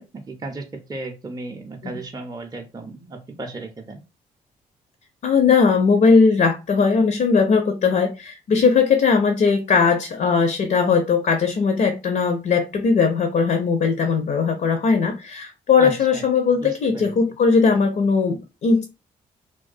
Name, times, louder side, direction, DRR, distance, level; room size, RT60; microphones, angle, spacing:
voice 1, 0.0-4.0 15.8-16.2 16.6-17.1, right 3 dB, 20° right, 3 dB, 0.5 m, -35 dB
voice 2, 5.2-18.8, left 5 dB, 50° left, 7 dB, 0.5 m, -19 dB
2.3 x 2.2 x 2.5 m, 0.27 s
hypercardioid pair, 45°, 19 cm